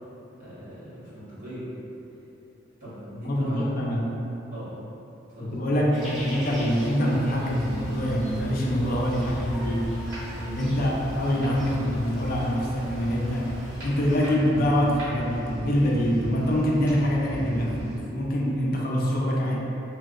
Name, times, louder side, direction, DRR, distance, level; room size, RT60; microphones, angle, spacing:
voice 1, 0.4-1.7 2.8-3.7 4.5-4.8 5.3-5.5 10.2-10.6, equal, 45° right, -12 dB, 1.2 m, -40 dB
voice 2, 3.1-4.1 5.4-9.9 10.5-13.5 13.8-19.6, equal, 50° left, -2 dB, 0.4 m, -25 dB
sound 1, 5.9-14.3, equal, ahead, 1.0 m, -42 dB
sound 2, 7.4-17.9, equal, 80° right, 1.1 m, -38 dB
3.2 x 2.7 x 2.4 m, 2.9 s
head